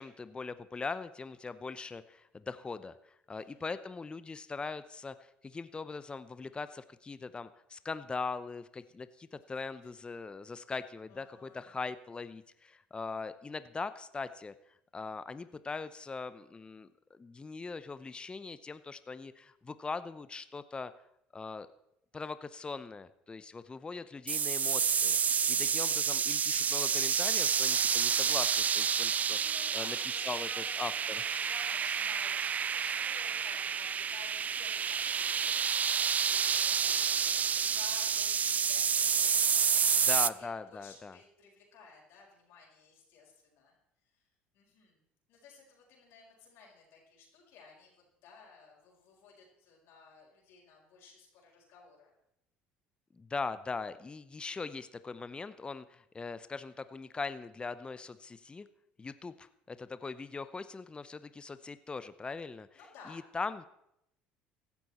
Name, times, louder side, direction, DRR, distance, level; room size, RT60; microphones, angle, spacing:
voice 1, 0.0-14.5 14.9-20.9 21.3-21.7 22.1-25.2 25.5-30.0 30.2-30.5 30.8-31.2 40.1-41.2 53.1-58.7 59.0-62.7 63.1-63.7, left 4 dB, 20° left, 14 dB, 0.7 m, -41 dB
voice 2, 3.3-3.6 11.1-11.6 29.3-43.7 44.1-44.2 44.5-45.0 45.3-47.9 48.2-52.1 62.7-63.2, left 5 dB, 65° left, -2 dB, 4.9 m, -55 dB
sound 1, 24.3-40.3, right 7 dB, 35° right, 0.4 m, -29 dB
15.5 x 12.0 x 4.3 m, 0.80 s
hypercardioid pair, 75°, 4 cm